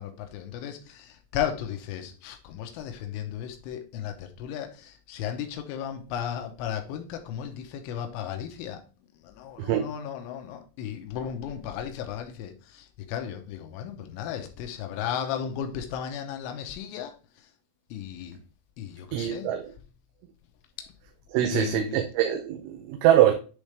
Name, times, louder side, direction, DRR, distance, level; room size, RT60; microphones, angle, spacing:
voice 1, 0.0-8.8 9.1-17.5 17.9-18.4 18.8-19.5 21.5-22.0, left 9 dB, 90° left, 3.3 m, -35 dB
voice 2, 19.1-19.6 21.3-23.3, right 11 dB, 85° right, 3.1 m, -23 dB
9.9 x 3.6 x 3.3 m
omnidirectional pair, 5.3 m